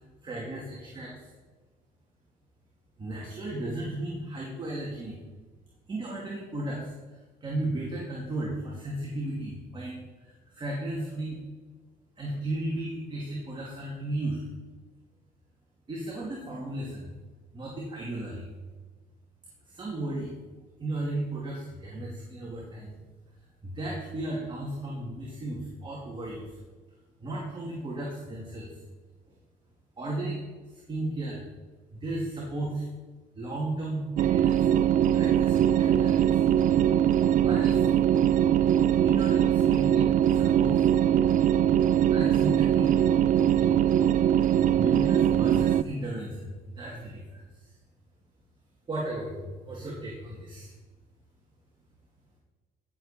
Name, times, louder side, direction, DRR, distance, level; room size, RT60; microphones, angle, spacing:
voice 1, 0.2-1.3 3.0-5.2 5.9-11.4 12.2-14.4 15.9-17.1 17.5-18.5 19.7-20.3 20.8-22.9 23.6-26.6 27.2-28.7 30.0-30.4 30.7-31.4 31.9-32.9 33.4-34.7 35.1-36.4 37.4-37.9 38.8-40.8 42.1-43.1 43.5-43.8 44.7-47.7 48.9-50.7, right 1 dB, 30° right, -3 dB, 2.5 m, -35 dB
sound 1, 34.2-45.8, right 10 dB, 50° right, 0.4 m, -22 dB
16.0 x 7.3 x 4.3 m, 1.4 s
cardioid pair, 110°, 17 cm